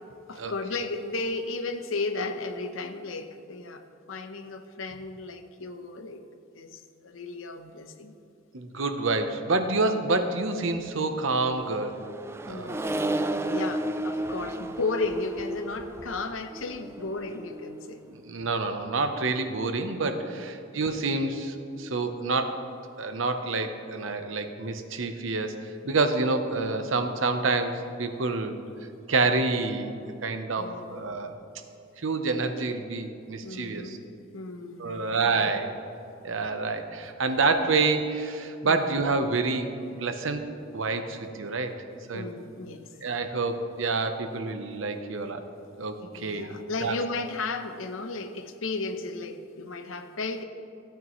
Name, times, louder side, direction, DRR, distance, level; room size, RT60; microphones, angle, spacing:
voice 1, 0.3-3.8 4.1-6.2 6.5-8.1 12.5-18.0 20.6-20.7 30.6-31.0 33.4-34.0 34.3-35.5 38.6-38.9 42.1-43.0 46.1-50.4, left 3 dB, 90° left, 7 dB, 0.8 m, -34 dB
voice 2, 8.5-12.0 12.5-12.8 18.1-22.6 23.0-28.6 29.1-29.9 30.2-31.4 32.0-34.0 34.8-35.7 36.2-39.7 40.0-40.4 40.7-41.7 42.1-42.3 43.0-45.4 45.8-47.0, right 3 dB, 75° right, 7 dB, 0.8 m, -28 dB
Accelerating revving vroom, 11.3-17.9, right 1 dB, 15° right, 0.3 m, -33 dB
16.5 x 9.0 x 3.1 m, 2.5 s
head